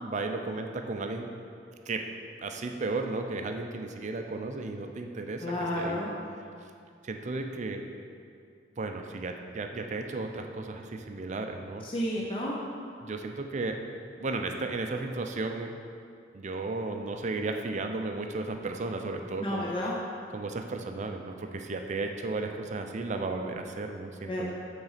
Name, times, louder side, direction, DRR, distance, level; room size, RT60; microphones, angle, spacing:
voice 1, 0.0-1.3 1.9-2.0 2.4-5.4 5.8-6.1 7.0-7.8 8.8-11.9 13.0-13.8 14.2-15.7 16.3-19.7 20.3-24.5, right 3 dB, 40° right, 4 dB, 0.5 m, -34 dB
voice 2, 5.4-6.1 11.8-12.6 19.4-19.9 24.2-24.5, left 1 dB, 30° left, -3 dB, 0.6 m, -31 dB
8.8 x 3.9 x 4.1 m, 2.4 s
head